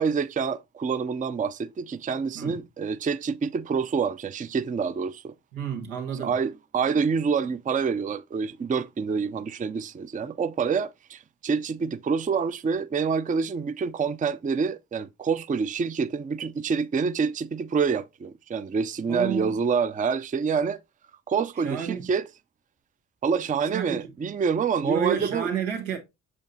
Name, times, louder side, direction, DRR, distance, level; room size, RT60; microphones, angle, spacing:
voice 1, 0.0-5.3 6.1-20.8 21.3-22.2 23.2-25.5, right 5 dB, 20° right, 0.4 m, -27 dB
voice 2, 5.5-6.3 19.1-19.6 21.6-22.1 23.7-24.0 24.8-26.0, right 8 dB, 90° right, 1.5 m, -30 dB
7.0 x 5.1 x 2.6 m
hypercardioid pair, 45°, 43 cm